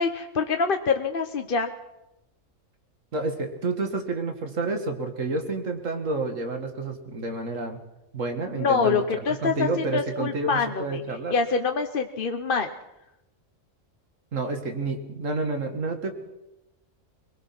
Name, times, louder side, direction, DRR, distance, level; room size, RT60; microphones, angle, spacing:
voice 1, 0.0-1.7 8.5-11.0 11.3-12.7, left 5 dB, 45° left, 6 dB, 1.0 m, -25 dB
voice 2, 3.1-7.8 8.1-11.3 14.3-16.1, right 3 dB, 70° right, 5 dB, 2.5 m, -29 dB
22.5 x 20.5 x 6.0 m, 0.91 s
omnidirectional pair, 1.4 m